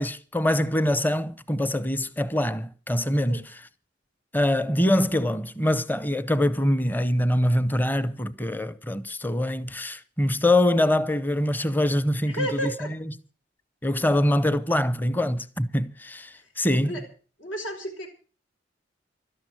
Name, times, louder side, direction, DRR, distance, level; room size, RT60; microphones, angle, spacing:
voice 1, 0.0-3.6 4.3-12.7 13.8-17.0, left 1 dB, 10° left, 0.7 m, -24 dB
voice 2, 12.3-12.9 16.8-17.0 17.4-18.1, equal, 80° left, 4.2 m, -31 dB
13.0 x 11.0 x 7.6 m
head